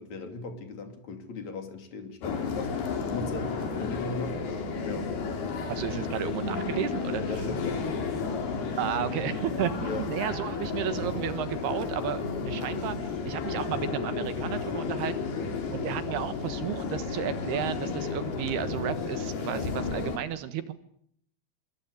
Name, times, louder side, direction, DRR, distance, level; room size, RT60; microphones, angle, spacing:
voice 1, 0.0-5.1 5.9-6.0 7.2-8.3 9.8-10.1, left 3 dB, 40° left, 6 dB, 3.9 m, -38 dB
sound 1, 2.2-20.2, left 4 dB, 55° left, 5.1 m, -32 dB
voice 2, 5.7-7.2 8.8-15.1 15.7-20.7, right 10 dB, 65° right, 12 dB, 3.0 m, -33 dB
25.5 x 25.0 x 8.4 m, 0.68 s
omnidirectional pair, 5.6 m